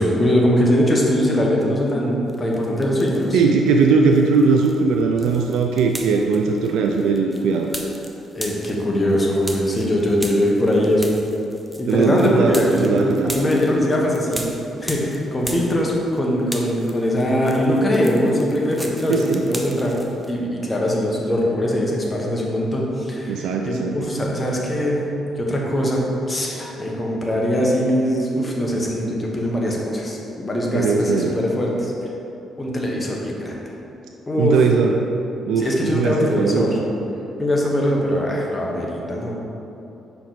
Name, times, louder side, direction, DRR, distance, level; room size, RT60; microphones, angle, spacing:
voice 1, 0.0-3.4 8.3-11.2 11.8-20.0 20.3-25.0 25.4-26.0 26.3-31.9 32.6-33.6 34.3-34.6 35.6-36.8 37.4-39.4, equal, 20° left, -2 dB, 1.2 m, -21 dB
sound 1, 2.3-3.4 3.8-16.2 16.4-20.3, right 1 dB, 5° right, 0.7 m, -36 dB
voice 2, 3.3-7.7 11.9-13.3 19.1-19.5 23.3-23.9 24.3-24.4 30.7-31.4 34.4-35.0 35.5-36.8, right 5 dB, 85° right, 2 dB, 0.3 m, -19 dB
5.8 x 4.6 x 4.0 m, 3.0 s
cardioid pair, 90°, 0 cm